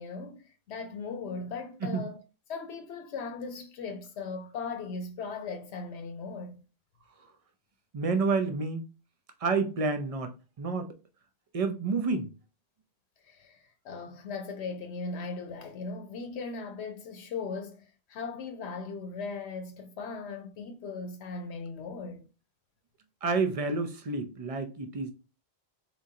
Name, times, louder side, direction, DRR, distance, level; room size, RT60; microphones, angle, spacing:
voice 1, 0.0-2.2 2.5-6.6 13.2-22.2, left 4 dB, 90° left, 0.9 m, -38 dB
voice 2, 7.9-8.9 9.4-10.9 11.5-12.3 23.2-25.1, right 4 dB, 40° right, 0.6 m, -29 dB
4.5 x 3.6 x 2.7 m
omnidirectional pair, 1.1 m